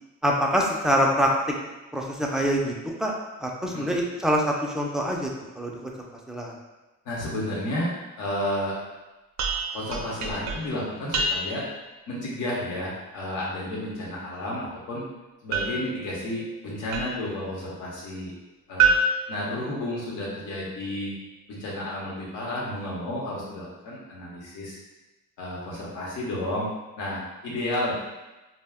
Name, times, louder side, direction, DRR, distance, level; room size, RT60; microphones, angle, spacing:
voice 1, 0.2-1.3 1.9-3.1 3.4-5.3 5.6-5.9 6.3-6.5, equal, ahead, -1 dB, 0.4 m, -25 dB
voice 2, 7.0-7.9 8.2-8.8 9.7-11.6 12.1-15.0 15.4-18.3 18.7-18.9 19.3-21.1 21.5-24.8 25.4-26.7 27.0-27.9, left 1 dB, 85° left, -5 dB, 0.9 m, -31 dB
sound 1, 9.4-11.8 15.5-17.4 18.8-20.2, right 3 dB, 65° right, 0.5 m, -28 dB
2.2 x 2.1 x 3.4 m, 1.1 s
cardioid pair, 90°, 30 cm